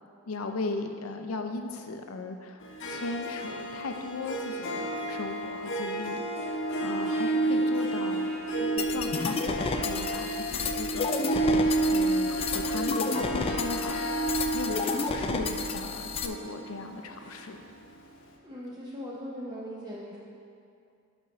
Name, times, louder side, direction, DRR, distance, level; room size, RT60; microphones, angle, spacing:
voice 1, 0.3-11.1 11.9-17.6, left 3 dB, 90° left, 6 dB, 0.5 m, -37 dB
Harp, 2.6-18.0, right 2 dB, 60° left, 0.8 m, -31 dB
sound 1, 8.4-15.5, left 2 dB, 75° right, 0.5 m, -42 dB
sound 2, 8.8-16.3, left 4 dB, 25° left, 0.3 m, -32 dB
voice 2, 18.4-20.2, equal, 20° right, -6 dB, 0.6 m, -39 dB
5.5 x 5.2 x 6.0 m, 2.5 s
head